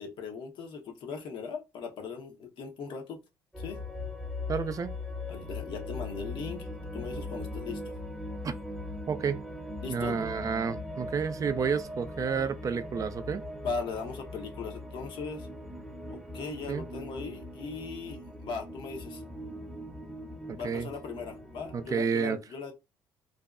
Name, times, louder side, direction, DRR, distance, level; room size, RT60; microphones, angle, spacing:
voice 1, 0.0-3.2 3.6-3.8 5.3-6.7 6.9-8.0 9.8-10.2 13.6-15.5 16.1-19.2 20.6-22.7, left 5 dB, 70° left, 0.8 m, -39 dB
sound 1, 3.5-21.9, left 1 dB, ahead, 0.7 m, -40 dB
voice 2, 4.5-4.9 8.4-8.5 9.1-9.4 9.9-13.4 16.7-16.8 20.5-20.9 21.7-22.4, right 6 dB, 40° right, 0.3 m, -30 dB
2.6 x 2.1 x 2.4 m
supercardioid pair, 75°, 9 cm